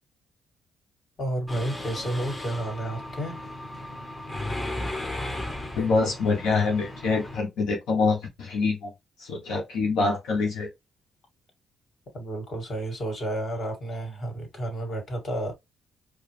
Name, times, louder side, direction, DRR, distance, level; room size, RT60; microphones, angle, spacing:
voice 1, 1.2-3.4 12.1-15.5, right 1 dB, 45° left, 2.1 m, -31 dB
Mechanisms, 1.5-7.4, left 1 dB, 20° left, 0.9 m, -35 dB
voice 2, 5.8-8.9 9.2-10.7, left 4 dB, 85° left, 1.0 m, -25 dB
4.7 x 2.1 x 3.3 m
cardioid pair, 90°, 0 cm